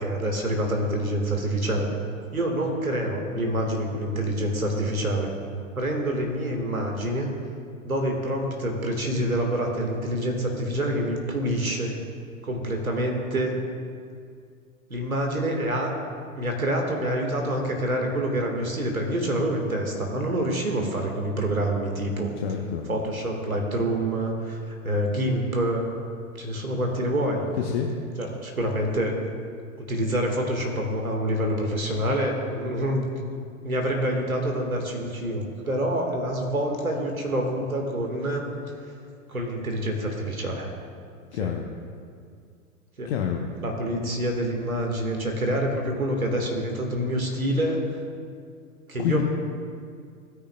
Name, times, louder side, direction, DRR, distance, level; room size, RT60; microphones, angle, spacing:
voice 1, 0.0-1.9 2.3-5.3 5.8-7.3 7.8-11.9 12.4-13.6 14.9-15.9 16.4-22.3 22.9-25.9 26.4-27.4 28.2-29.1 29.9-33.1 33.6-38.5 38.8-38.9 39.3-40.7 41.4-41.5 43.0-43.1 43.6-47.8 48.9-49.2, right 1 dB, 80° right, 1 dB, 1.7 m, -27 dB
voice 2, 22.4-22.9 27.6-27.9 41.3-41.7 43.1-43.4 44.0-44.1 49.0-49.2, left 9 dB, 45° left, 2 dB, 0.9 m, -27 dB
16.5 x 9.8 x 2.2 m, 2.2 s
figure-of-eight pair, 95°, 42 cm